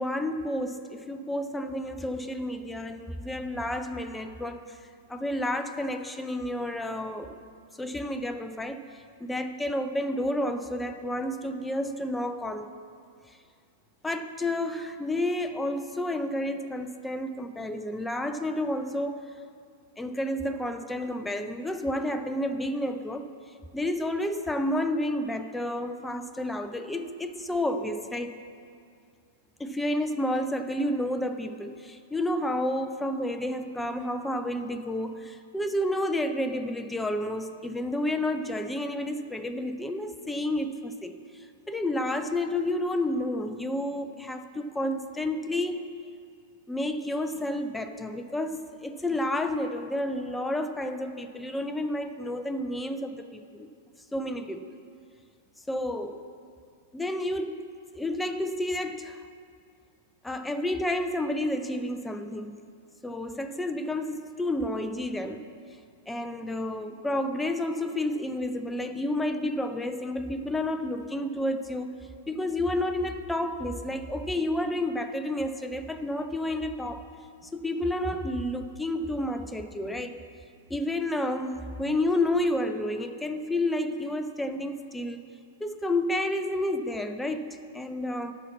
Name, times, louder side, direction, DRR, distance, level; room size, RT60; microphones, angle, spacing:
voice 1, 0.0-4.8 5.1-7.4 7.8-12.7 14.0-19.2 20.0-23.3 23.7-28.4 29.6-45.9 46.7-53.7 54.1-54.8 55.7-56.3 56.9-57.7 57.9-59.3 60.2-62.6 63.0-65.5 66.1-71.9 72.3-77.0 77.5-80.2 80.7-85.2 85.6-88.3, left 1 dB, 5° left, 8 dB, 0.5 m, -30 dB
8.1 x 5.7 x 7.1 m, 2.2 s
hypercardioid pair, 105°, 0 cm